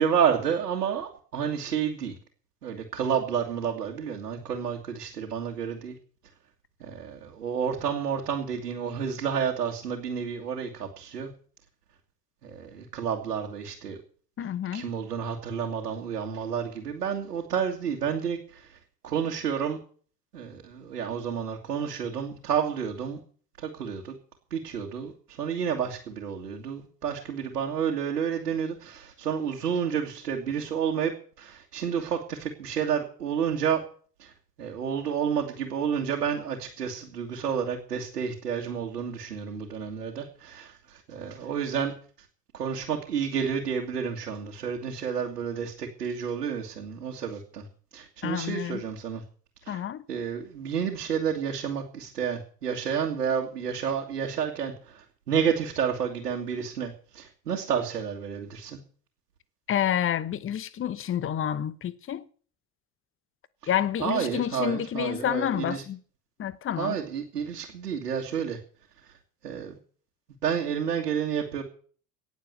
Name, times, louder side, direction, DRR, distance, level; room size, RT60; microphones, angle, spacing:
voice 1, 0.0-2.1 2.6-5.9 6.8-11.3 12.4-14.0 14.7-18.8 19.0-19.8 20.3-23.2 23.6-24.2 24.5-31.1 31.4-33.8 34.2-34.3 34.6-41.9 42.5-47.6 47.9-49.2 49.7-49.8 50.1-58.8 64.0-65.8 66.8-68.6 69.4-69.7 70.4-71.6, right 7 dB, 75° right, 2.2 m, -30 dB
voice 2, 14.4-14.9 48.2-48.8 49.7-50.0 59.7-62.2 63.7-66.0 66.4-66.9, left 10 dB, 25° left, 1.1 m, -29 dB
18.0 x 7.5 x 7.0 m
figure-of-eight pair, 70°, 47 cm